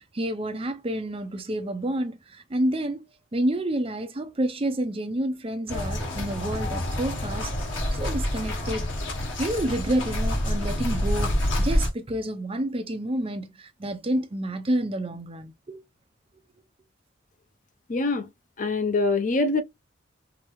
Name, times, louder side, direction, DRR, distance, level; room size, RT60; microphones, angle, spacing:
voice 1, 0.1-3.0 3.3-7.5 7.9-8.9 9.4-15.8, right 1 dB, 30° right, 0.6 m, -29 dB
sound 1, 5.7-11.9, left 1 dB, 80° left, 1.5 m, -27 dB
voice 2, 17.9-18.3 18.6-19.6, left 3 dB, 40° left, 0.5 m, -24 dB
5.0 x 2.0 x 3.0 m
head